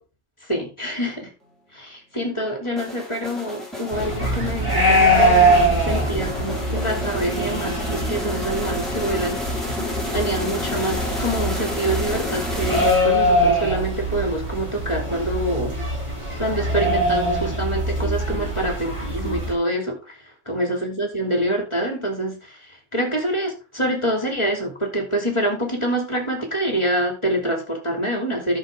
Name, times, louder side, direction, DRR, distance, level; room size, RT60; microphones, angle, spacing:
voice 1, 0.4-1.3 1.7-9.5 10.1-15.8 16.4-28.6, right 1 dB, 20° left, 1 dB, 3.0 m, -26 dB
sound 1, 2.8-13.4, left 1 dB, ahead, 3.9 m, -31 dB
sound 2, 3.9-19.5, equal, 20° right, 6.2 m, -23 dB
13.0 x 6.7 x 3.7 m, 0.32 s
omnidirectional pair, 1.5 m